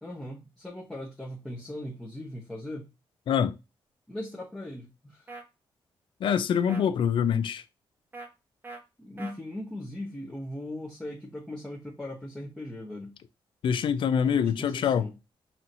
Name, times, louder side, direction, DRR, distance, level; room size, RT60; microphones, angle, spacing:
voice 1, 0.0-2.9 4.1-5.3 9.0-13.1 14.3-15.1, left 1 dB, 5° left, 0.9 m, -39 dB
sound 1, 5.3-5.4 6.2-6.4 6.7-6.8 8.1-8.3 8.6-8.8 9.2-9.3, right 3 dB, 20° right, 0.9 m, -41 dB
voice 2, 6.2-7.6 13.6-15.1, left 8 dB, 65° left, 0.4 m, -25 dB
5.6 x 2.9 x 2.5 m
wide cardioid pair, 150°, 9 cm